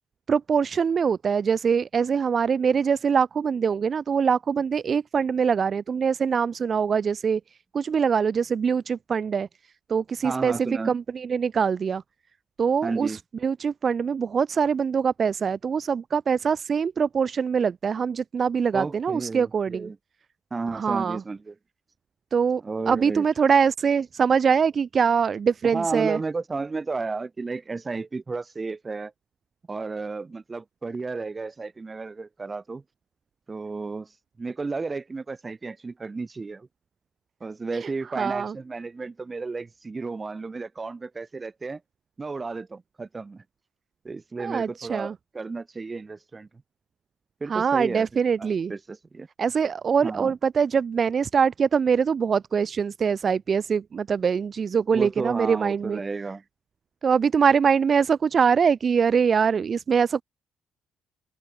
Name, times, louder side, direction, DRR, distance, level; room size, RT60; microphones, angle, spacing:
voice 1, 0.3-7.4 7.7-9.5 9.9-12.0 12.6-19.9 20.7-21.2 22.3-22.6 22.9-26.2 37.7-37.9 38.2-38.5 44.4-45.1 47.5-48.7 49.4-56.0 57.0-60.2, right 6 dB, 45° right, 1.0 m, -23 dB
voice 2, 10.2-10.9 12.8-13.2 18.7-20.0 20.5-21.5 22.6-23.3 25.7-29.1 29.7-32.8 33.5-34.1 34.4-36.7 37.4-41.8 42.2-43.4 44.0-46.5 47.4-48.1 48.4-49.3 50.0-50.3 54.9-56.4, right 4 dB, 30° right, 1.1 m, -32 dB
open air
cardioid pair, 90°, 0 cm